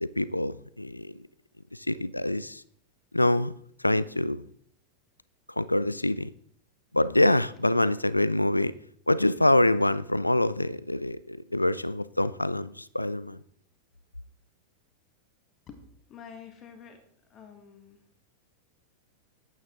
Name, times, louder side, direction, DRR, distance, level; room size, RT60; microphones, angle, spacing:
voice 1, 0.0-1.2 1.7-2.6 3.1-3.5 3.8-4.4 5.6-6.3 6.9-8.7 9.1-13.4, left 1 dB, 85° left, 0.3 m, -25 dB
voice 2, 16.1-17.0 17.3-18.0, left 7 dB, 30° left, 1.4 m, -47 dB
8.9 x 8.6 x 3.7 m
figure-of-eight pair, 90°, 0 cm